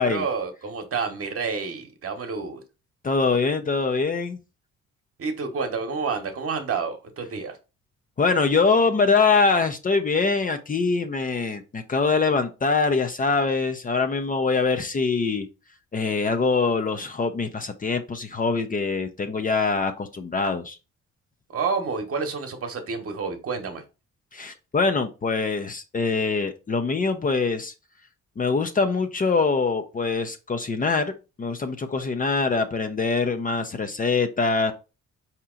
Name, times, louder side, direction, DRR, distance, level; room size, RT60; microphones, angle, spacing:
voice 1, 0.0-2.6 5.2-7.6 21.5-23.8, right 5 dB, 50° right, 1.1 m, -29 dB
voice 2, 3.0-4.4 8.2-15.5 15.9-20.8 24.3-27.7 28.4-34.7, left 4 dB, 30° left, 0.6 m, -23 dB
4.5 x 2.9 x 3.7 m
cardioid pair, 90°, 30 cm